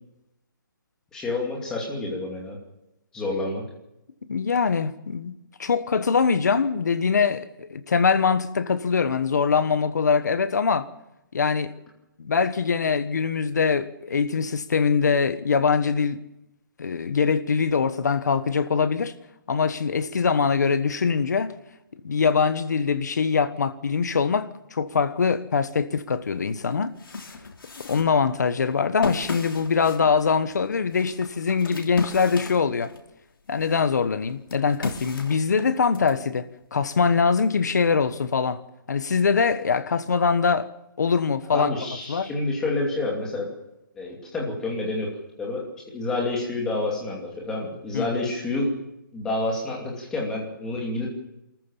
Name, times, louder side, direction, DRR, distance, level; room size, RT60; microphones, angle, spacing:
voice 1, 1.1-2.6 3.1-3.6 41.5-43.5 44.0-45.1 45.4-48.7 49.1-51.1, left 2 dB, 5° left, 2.7 m, -28 dB
voice 2, 4.3-5.3 5.6-10.9 11.3-11.7 12.2-16.2 16.8-19.1 19.5-21.5 22.0-26.9 27.8-32.9 33.5-38.6 38.9-40.7 41.0-41.7 42.1-42.3 47.9-48.2, left 5 dB, 55° left, 1.4 m, -23 dB
sound 1, 26.2-26.3 26.7-33.1 33.5-36.1, left 3 dB, 85° left, 3.3 m, -35 dB
25.0 x 14.0 x 7.3 m
hypercardioid pair, 175°, 11 cm